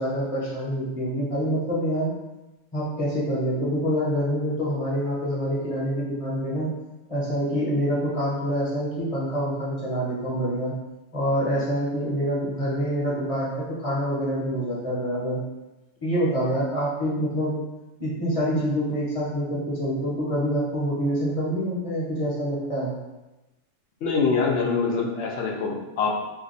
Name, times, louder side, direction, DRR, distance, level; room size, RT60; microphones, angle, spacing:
voice 1, 0.0-2.1 2.7-6.7 7.1-10.7 11.1-15.4 16.0-17.6 18.0-22.9, equal, 30° left, -7 dB, 0.9 m, -26 dB
voice 2, 24.0-26.1, left 4 dB, 65° left, 0 dB, 0.8 m, -24 dB
2.8 x 2.2 x 3.9 m, 1.0 s
omnidirectional pair, 1.3 m